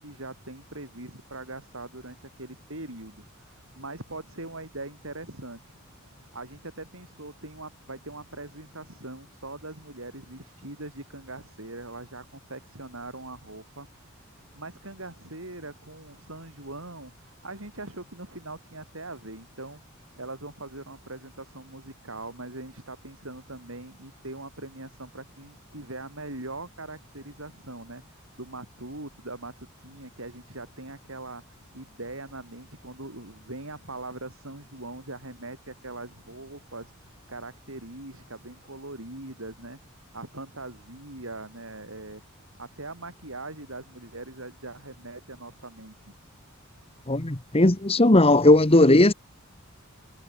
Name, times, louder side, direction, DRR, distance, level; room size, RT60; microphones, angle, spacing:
voice 1, 0.0-5.7 6.3-13.9 14.5-19.8 20.2-31.4 31.7-39.8 40.1-42.2 42.6-46.1, right 2 dB, 70° right, 7.3 m, -41 dB
voice 2, 47.1-49.1, left 1 dB, 25° left, 1.6 m, -17 dB
head